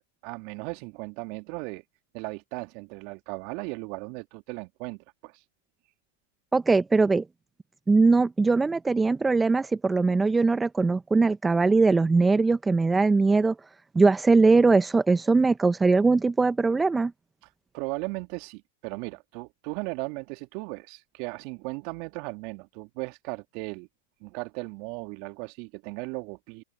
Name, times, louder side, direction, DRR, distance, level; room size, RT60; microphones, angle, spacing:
voice 1, 0.0-1.8 2.1-5.4 17.7-23.9 24.2-26.6, right 28 dB, 50° right, 2.7 m, -37 dB
voice 2, 6.5-7.2 7.9-13.5 13.9-17.1, right 3 dB, 10° right, 0.9 m, -21 dB
hypercardioid pair, 110°, 0 cm